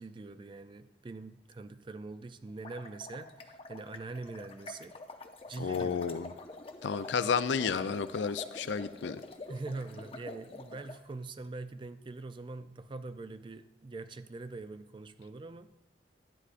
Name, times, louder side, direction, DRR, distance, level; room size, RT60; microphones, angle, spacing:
voice 1, 0.0-4.9 5.5-6.1 9.5-15.7, right 3 dB, 25° right, 11 dB, 0.3 m, -43 dB
sound 1, 2.5-11.0, left 2 dB, 30° left, 0.6 m, -47 dB
voice 2, 5.6-6.3 6.8-9.2, left 6 dB, 80° left, 13 dB, 0.4 m, -31 dB
11.5 x 9.6 x 2.5 m, 0.88 s
head